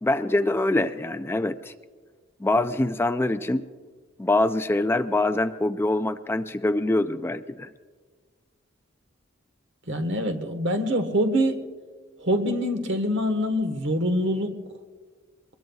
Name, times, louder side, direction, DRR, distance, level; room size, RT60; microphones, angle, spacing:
voice 1, 0.0-1.7 2.4-3.7 4.2-7.7, left 2 dB, 10° left, 10 dB, 0.3 m, -24 dB
voice 2, 9.9-11.6 12.2-14.5, equal, 65° right, 7 dB, 1.4 m, -24 dB
23.5 x 21.0 x 2.3 m, 1.5 s
head